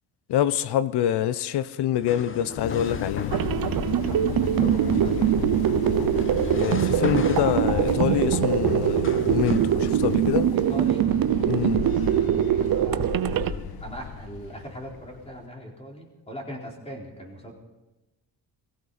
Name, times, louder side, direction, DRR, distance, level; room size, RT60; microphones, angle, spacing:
voice 1, 0.3-3.3 6.5-10.5 11.5-11.8, left 11 dB, 75° left, 0.8 m, -25 dB
sound 1, 1.9-9.8, left 5 dB, 30° left, 1.0 m, -39 dB
sound 2, 2.6-15.4, left 8 dB, 60° left, 1.1 m, -34 dB
sound 3, 3.3-13.5, right 11 dB, 60° right, 0.8 m, -23 dB
voice 2, 4.6-5.7 10.5-11.1 12.7-17.5, right 1 dB, 15° left, 4.2 m, -40 dB
20.0 x 16.0 x 4.2 m
cardioid pair, 95°, 40 cm